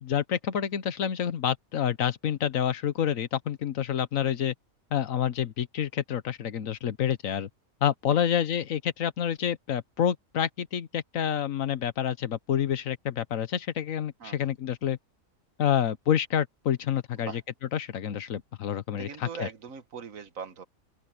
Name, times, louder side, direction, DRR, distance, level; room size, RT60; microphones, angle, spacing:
voice 1, 0.0-4.5 4.9-7.5 7.8-15.0 15.6-17.4 17.7-19.5, left 9 dB, 70° left, 1.3 m, -28 dB
voice 2, 19.0-20.6, right 6 dB, 75° right, 1.7 m, -41 dB
open air
omnidirectional pair, 1.4 m